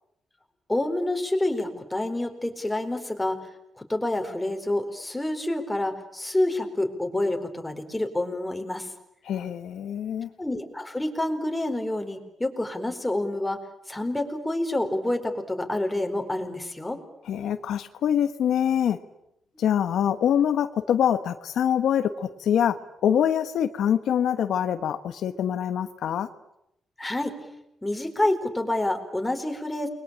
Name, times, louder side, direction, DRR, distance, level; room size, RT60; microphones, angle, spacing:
voice 1, 0.7-3.4 3.8-8.9 10.4-13.6 13.9-17.0 27.0-27.4 27.8-29.9, left 1 dB, 10° left, 4 dB, 4.4 m, -28 dB
voice 2, 9.2-10.3 17.2-19.0 19.6-22.8 23.0-26.3, left 9 dB, 80° left, 9 dB, 1.4 m, -24 dB
29.5 x 22.5 x 8.8 m, 0.81 s
cardioid pair, 110°, 0 cm